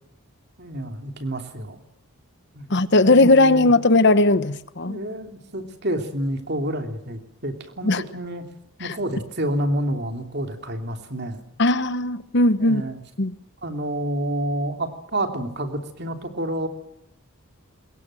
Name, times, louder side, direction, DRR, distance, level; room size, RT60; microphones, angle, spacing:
voice 1, 0.6-1.8 2.5-2.7 3.0-3.7 4.8-8.4 8.8-11.4 12.6-13.0 13.6-16.7, right 1 dB, 50° right, 6 dB, 3.0 m, -29 dB
voice 2, 2.7-5.0 7.8-8.0 8.8-8.9 11.6-12.8 13.2-13.3, left 2 dB, 50° left, 14 dB, 1.0 m, -18 dB
24.0 x 21.5 x 7.8 m, 0.81 s
head